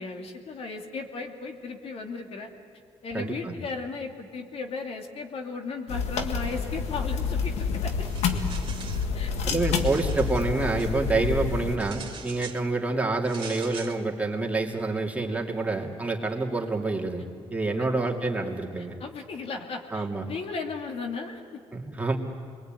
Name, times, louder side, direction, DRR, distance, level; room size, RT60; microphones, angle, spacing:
voice 1, 0.0-2.5 3.0-8.1 9.1-9.6 17.8-17.9 19.0-21.6, left 4 dB, 60° left, 3 dB, 2.5 m, -36 dB
voice 2, 3.1-3.5 8.3-8.4 9.4-19.0 19.9-20.2 21.7-22.2, right 3 dB, 15° right, -1 dB, 2.9 m, -27 dB
sound 1, 5.9-11.8, left 5 dB, 90° left, 1.8 m, -28 dB
sound 2, 8.0-9.1 9.5-10.9 11.8-12.6 13.2-14.0, right 6 dB, 50° right, 2.5 m, -43 dB
27.0 x 22.0 x 9.2 m, 2.3 s
cardioid pair, 90°, 11 cm